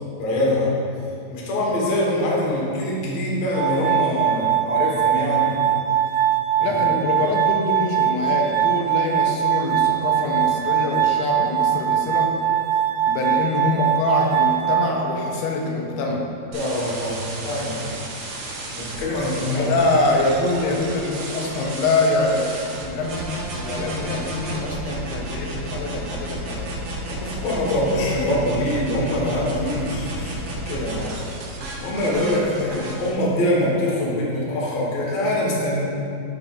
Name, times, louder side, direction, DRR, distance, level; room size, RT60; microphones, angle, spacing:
voice 1, 0.2-0.7 1.3-5.5 6.6-7.0 16.5-17.8 18.7-19.8 20.6-20.8 27.1-31.3 31.8-35.8, left 1 dB, 60° left, -4 dB, 1.8 m, -24 dB
Glass, 3.5-15.5, right 10 dB, 90° right, 2.7 m, -22 dB
voice 2, 6.6-12.3 13.1-16.2 19.5-23.3 23.5-26.7 32.6-32.7, left 2 dB, 80° left, 0 dB, 2.6 m, -24 dB
sound 1, 16.5-33.1, right 2 dB, 70° right, 2.0 m, -32 dB
13.5 x 5.0 x 2.4 m, 2.5 s
omnidirectional pair, 4.9 m